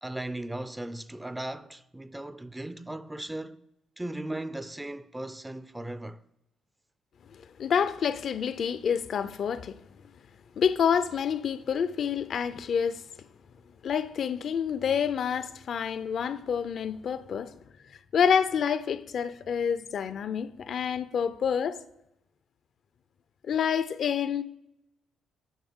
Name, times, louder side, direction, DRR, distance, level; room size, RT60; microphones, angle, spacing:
voice 1, 0.0-3.6 4.0-6.2, right 1 dB, 10° right, 0.4 m, -37 dB
voice 2, 7.3-9.8 10.6-13.0 13.8-17.5 18.1-21.8 23.4-24.4, left 7 dB, 60° left, 0.4 m, -28 dB
10.5 x 5.3 x 3.6 m
cardioid pair, 90°, 0 cm